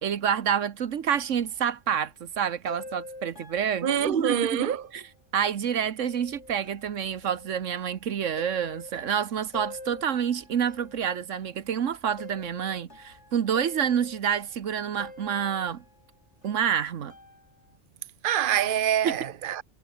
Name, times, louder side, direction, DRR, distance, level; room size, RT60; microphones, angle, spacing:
voice 1, 0.0-4.6 4.9-5.0 5.3-15.8 16.4-17.1 19.0-19.2, right 8 dB, 75° right, 1.4 m, -28 dB
sound 1, 1.2-2.0 2.7-5.1 6.0-11.7 11.9-16.1 16.4-16.5 17.1-17.7, left 2 dB, 65° left, 6.0 m, -46 dB
voice 2, 3.8-4.9 18.2-19.6, right 9 dB, 50° right, 1.1 m, -25 dB
omnidirectional pair, 1.3 m